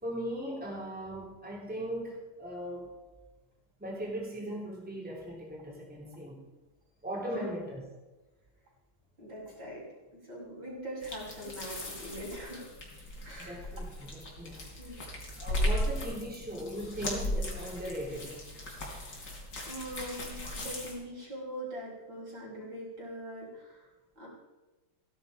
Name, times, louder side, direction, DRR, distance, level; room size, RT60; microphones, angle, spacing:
voice 1, 0.0-2.9 3.8-6.5 7.0-7.8 13.4-14.7 15.4-18.4, equal, 5° right, -4 dB, 3.4 m, -38 dB
voice 2, 9.2-9.9 10.2-12.7 13.2-13.6 14.8-15.0 19.0-19.3 19.7-23.9 24.2-24.3, equal, 60° right, -4 dB, 6.4 m, -42 dB
sound 1, 11.0-20.9, equal, 50° left, 4.3 m, -37 dB
16.0 x 12.0 x 5.2 m, 1.1 s
omnidirectional pair, 2.4 m